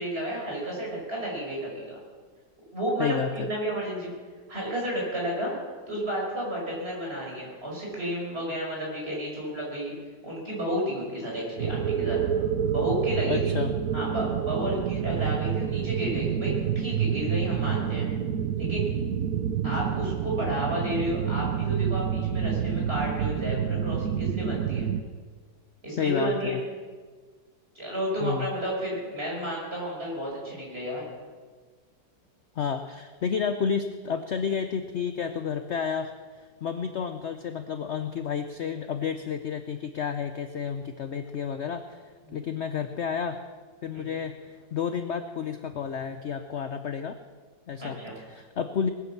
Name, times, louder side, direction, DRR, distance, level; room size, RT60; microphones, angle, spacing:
voice 1, 0.0-2.0 2.7-4.1 4.5-5.5 5.9-9.9 10.2-12.2 12.7-13.5 13.9-18.1 18.6-18.8 19.6-24.9 25.8-26.6 27.7-31.0 42.3-42.4 43.9-44.1 47.8-48.2, equal, 35° right, -3 dB, 5.8 m, -32 dB
voice 2, 3.0-3.5 13.3-13.7 26.0-26.6 28.2-28.5 32.6-42.0 42.3-43.4 43.8-47.2 47.7-48.9, left 7 dB, 60° left, 9 dB, 0.7 m, -31 dB
sound 1, 11.6-25.0, right 8 dB, 65° right, 1.2 m, -28 dB
20.0 x 9.7 x 7.2 m, 1.5 s
omnidirectional pair, 1.9 m